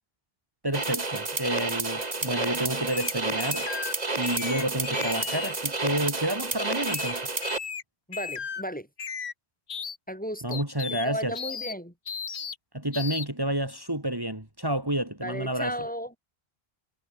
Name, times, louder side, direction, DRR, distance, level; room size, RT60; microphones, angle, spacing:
voice 1, 0.6-3.7 4.2-7.3 10.4-11.4 12.7-15.8, right 1 dB, 20° right, 3.4 m, -30 dB
sound 1, 0.7-7.6, right 3 dB, 40° right, 2.0 m, -30 dB
sound 2, 2.9-3.9 4.2-5.5 6.6-7.1 7.4-7.8 8.1-8.6 9.0-9.3 9.7-10.0 10.5-11.1 11.3-11.7 12.1-12.6 12.9-13.3, left 6 dB, 85° left, 1.5 m, -35 dB
voice 2, 8.1-8.9 10.1-10.6 10.9-11.9 15.2-16.1, equal, 10° left, 4.9 m, -35 dB
omnidirectional pair, 1.1 m